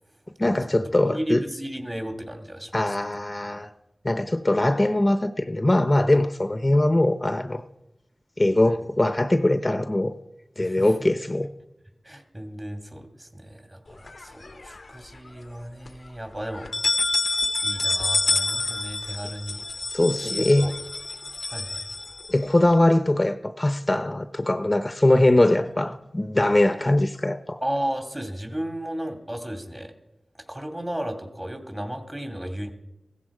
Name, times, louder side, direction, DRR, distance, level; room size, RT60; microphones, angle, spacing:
voice 1, 0.4-1.4 2.7-3.7 4.0-7.6 8.4-10.1 10.6-11.5 19.9-20.7 22.3-27.6, left 1 dB, 30° left, 0.8 m, -21 dB
voice 2, 1.1-2.9 8.6-8.8 10.6-10.9 12.0-16.7 17.6-19.6 20.2-20.7 21.5-21.8 27.6-29.9 30.5-32.7, right 1 dB, 25° right, 2.5 m, -34 dB
sound 1, 14.1-15.0 15.4-15.5 15.9-16.0 16.5-22.7, left 3 dB, 65° left, 0.7 m, -28 dB
16.0 x 14.0 x 4.9 m
cardioid pair, 40°, 0 cm